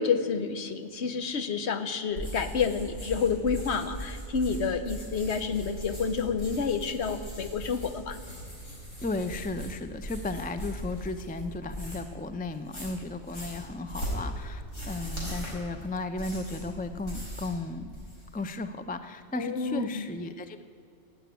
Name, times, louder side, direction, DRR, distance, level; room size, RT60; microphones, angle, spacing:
voice 1, 0.0-8.2 19.3-20.1, left 5 dB, 65° left, 10 dB, 1.1 m, -29 dB
sound 1, 2.1-12.2 12.5-17.6 17.8-18.4, equal, 90° left, 5.1 m, -39 dB
voice 2, 9.0-17.9 18.3-20.6, left 2 dB, 10° left, 10 dB, 0.4 m, -35 dB
16.0 x 8.7 x 9.1 m, 2.4 s
omnidirectional pair, 1.3 m